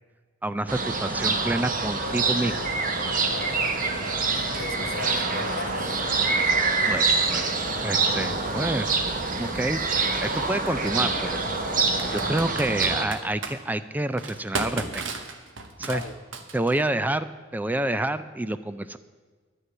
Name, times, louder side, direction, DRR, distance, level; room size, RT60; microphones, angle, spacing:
voice 1, 0.4-2.7 6.9-7.4 7.8-8.9 9.4-9.8 10.2-11.4 12.1-15.0 15.8-16.0 16.5-19.0, right 1 dB, 10° right, 13 dB, 0.3 m, -28 dB
sound 1, 0.7-13.1, right 4 dB, 45° right, 1.1 m, -26 dB
sound 2, 2.0-12.3, left 4 dB, 45° left, 0.5 m, -40 dB
voice 2, 3.3-3.8 4.3-6.0 15.8-16.1, left 4 dB, 80° left, 8 dB, 1.0 m, -37 dB
Computer keyboard, 9.0-9.1 10.7-10.9 11.8-13.6 14.2-16.9, right 4 dB, 70° right, 1.1 m, -34 dB
11.0 x 6.7 x 9.0 m, 1.5 s
head